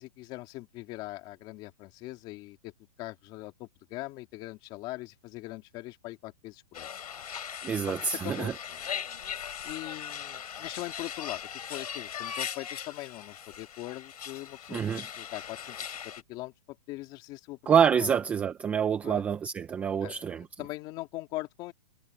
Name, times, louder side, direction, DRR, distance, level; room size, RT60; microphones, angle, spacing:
voice 1, 0.0-2.7 3.0-6.9 7.9-8.9 9.6-11.4 11.7-17.6 18.0-18.1 19.0-19.3 20.0-21.7, left 19 dB, 25° left, 2.9 m, -41 dB
sound 1, 6.7-16.2, left 8 dB, 75° left, 4.4 m, -39 dB
voice 2, 7.6-8.5 14.7-15.0 17.7-20.4, right 7 dB, 5° right, 0.6 m, -26 dB
hypercardioid pair, 165°, 20 cm